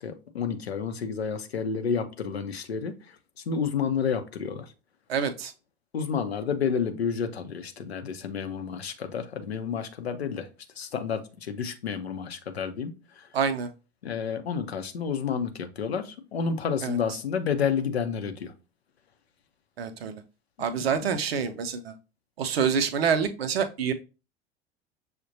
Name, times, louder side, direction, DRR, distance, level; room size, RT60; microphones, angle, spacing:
voice 1, 0.0-3.2 3.5-4.7 5.9-10.5 10.8-13.3 14.0-18.5 20.6-21.0, left 6 dB, 85° left, 0.6 m, -30 dB
voice 2, 5.1-5.5 13.3-13.7 16.8-17.0 19.8-20.2 20.6-21.9 22.4-23.9, right 6 dB, 75° right, 0.5 m, -27 dB
6.3 x 2.1 x 2.7 m
figure-of-eight pair, 70°, 31 cm